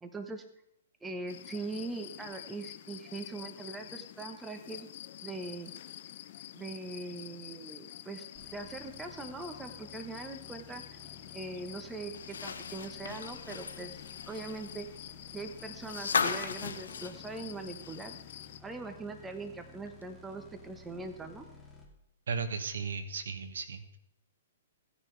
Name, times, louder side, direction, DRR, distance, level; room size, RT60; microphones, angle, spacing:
voice 1, 0.0-0.4 1.0-4.9 5.2-5.7 6.5-8.3 8.5-11.0 11.3-14.9 15.3-18.1 18.6-21.5, right 3 dB, 10° right, 6 dB, 1.2 m, -41 dB
sound 1, 1.3-18.6, left 12 dB, 55° left, 0.6 m, -48 dB
sound 2, 8.3-21.9, left 3 dB, 5° left, 2.1 m, -54 dB
sound 3, 12.1-18.2 18.5-18.6 20.0-20.1, left 5 dB, 85° left, 1.1 m, -36 dB
voice 2, 22.3-24.0, right 5 dB, 80° right, 10 dB, 1.2 m, -36 dB
16.0 x 9.8 x 3.4 m, 0.81 s
hypercardioid pair, 135°, 0 cm